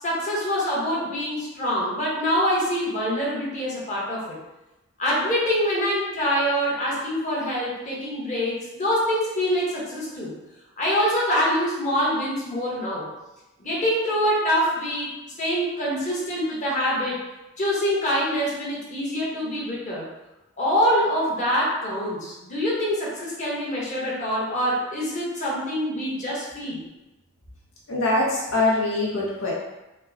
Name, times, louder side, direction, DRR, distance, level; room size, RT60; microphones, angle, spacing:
voice 1, 0.0-4.3 5.0-10.3 10.8-13.1 13.6-15.1 15.4-17.2 17.6-20.1 20.6-26.8, equal, 35° left, -6 dB, 1.1 m, -25 dB
voice 2, 27.9-29.5, left 2 dB, 70° left, -4 dB, 0.8 m, -23 dB
5.2 x 2.1 x 2.7 m, 1.0 s
head